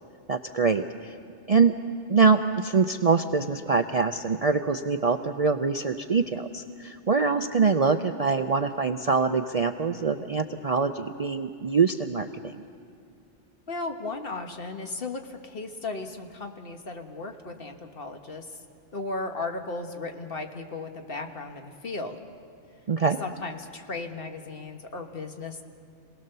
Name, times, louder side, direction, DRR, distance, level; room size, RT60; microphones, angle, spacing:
voice 1, 0.3-1.1 1.5-1.7 2.1-12.5 22.9-23.2, right 5 dB, 45° right, 7 dB, 0.5 m, -24 dB
voice 2, 13.7-18.6 18.9-22.2 23.0-25.6, left 3 dB, 50° left, 4 dB, 1.5 m, -36 dB
27.0 x 18.5 x 6.8 m, 2.5 s
omnidirectional pair, 1.2 m